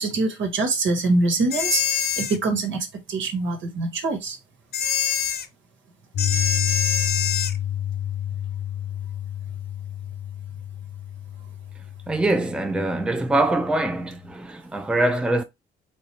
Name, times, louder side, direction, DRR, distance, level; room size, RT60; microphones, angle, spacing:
voice 1, 0.0-1.8 2.2-4.4, right 3 dB, 70° right, 1.4 m, -24 dB
sound 1, 1.5-2.4 4.7-5.5 6.2-7.6, left 8 dB, 55° left, 0.6 m, -25 dB
Piano, 6.1-14.2, left 11 dB, 90° left, 1.3 m, -30 dB
voice 2, 12.1-15.4, right 2 dB, 5° right, 0.6 m, -23 dB
4.2 x 3.2 x 3.3 m
cardioid pair, 90°, 20 cm